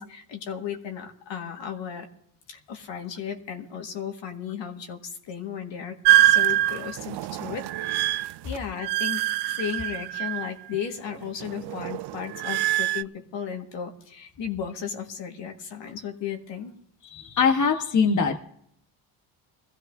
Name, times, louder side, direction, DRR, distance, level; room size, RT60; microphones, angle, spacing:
voice 1, 0.0-2.1 2.5-16.7, left 7 dB, 65° left, 3 dB, 2.0 m, -35 dB
sound 1, 6.0-10.8 11.1-13.0, right 13 dB, 60° right, 0.5 m, -24 dB
voice 2, 17.0-18.4, left 5 dB, 40° left, 3 dB, 1.3 m, -22 dB
20.5 x 15.0 x 2.7 m, 0.67 s
supercardioid pair, 70°, 47 cm